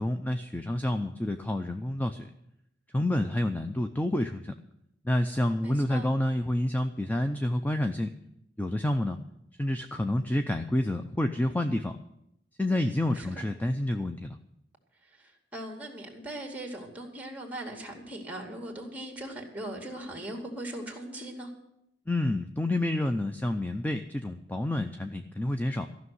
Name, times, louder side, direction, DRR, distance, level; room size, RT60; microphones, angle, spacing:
voice 1, 0.0-2.3 2.9-4.5 5.0-8.1 8.6-9.2 9.6-11.9 12.6-14.4 22.1-25.9, left 1 dB, 10° left, 7 dB, 0.5 m, -28 dB
voice 2, 5.6-6.1 12.8-13.3 15.2-21.5, right 1 dB, 10° right, 3 dB, 2.4 m, -40 dB
14.0 x 6.3 x 9.4 m, 0.81 s
head